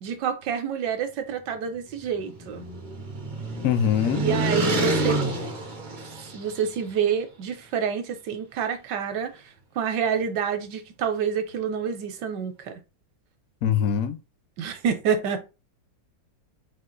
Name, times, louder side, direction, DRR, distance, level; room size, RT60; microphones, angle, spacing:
voice 1, 0.0-2.6 4.1-5.2 5.9-6.0 6.3-9.4 9.8-12.8 14.6-15.4, right 7 dB, 70° right, 1.2 m, -28 dB
sound 1, 1.9-6.7, right 2 dB, 55° right, 0.5 m, -28 dB
voice 2, 3.6-4.2 13.6-14.2, left 8 dB, 75° left, 0.7 m, -22 dB
4.5 x 2.5 x 3.8 m
omnidirectional pair, 2.1 m